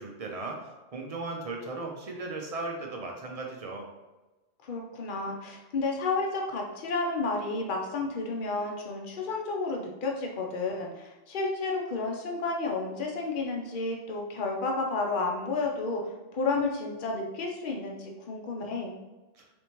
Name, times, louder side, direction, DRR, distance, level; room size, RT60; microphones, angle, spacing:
voice 1, 0.0-3.9, right 3 dB, 40° right, 1 dB, 0.6 m, -37 dB
voice 2, 4.6-19.0, left 3 dB, 50° left, 1 dB, 0.8 m, -31 dB
4.1 x 3.5 x 3.0 m, 1.1 s
omnidirectional pair, 1.3 m